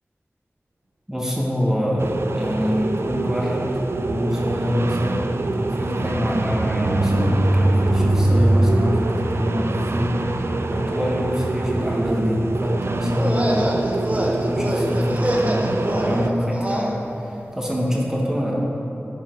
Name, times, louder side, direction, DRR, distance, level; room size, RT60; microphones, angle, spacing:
voice 1, 1.1-5.3 5.6-18.6, equal, 10° right, -3 dB, 1.3 m, -25 dB
sound 1, 2.0-16.3, right 3 dB, 60° right, 0.3 m, -27 dB
sound 2, 4.3-12.7 13.2-13.3 13.6-13.7 14.0-14.2, right 1 dB, 90° right, 0.7 m, -24 dB
gibber gabber, 13.1-16.9, equal, 30° right, 0.9 m, -25 dB
11.5 x 3.9 x 3.9 m, 3.0 s
wide cardioid pair, 40°, 5 cm